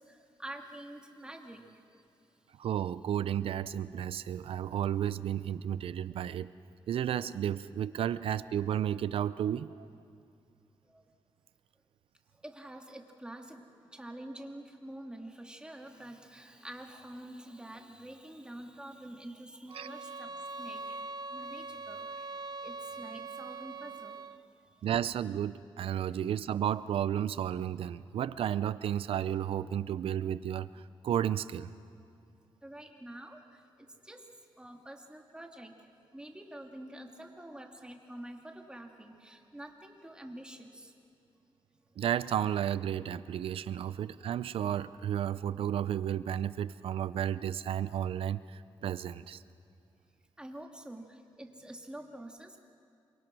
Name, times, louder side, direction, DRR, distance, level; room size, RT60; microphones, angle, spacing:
voice 1, 0.4-1.6 12.4-13.6 13.9-21.0 21.3-22.0 22.6-24.2 32.6-33.4 34.1-34.2 34.6-35.7 36.1-40.9 50.4-51.0 51.4-52.6, right 1 dB, 10° right, 2 dB, 2.6 m, -47 dB
voice 2, 2.6-6.5 6.9-9.9 19.7-19.9 24.8-31.7 42.0-49.4, right 10 dB, 85° right, 16 dB, 0.6 m, -32 dB
sound 1, 19.7-24.5, right 3 dB, 45° right, 0.7 m, -42 dB
28.0 x 23.5 x 6.2 m, 2.5 s
cardioid pair, 90°, 9 cm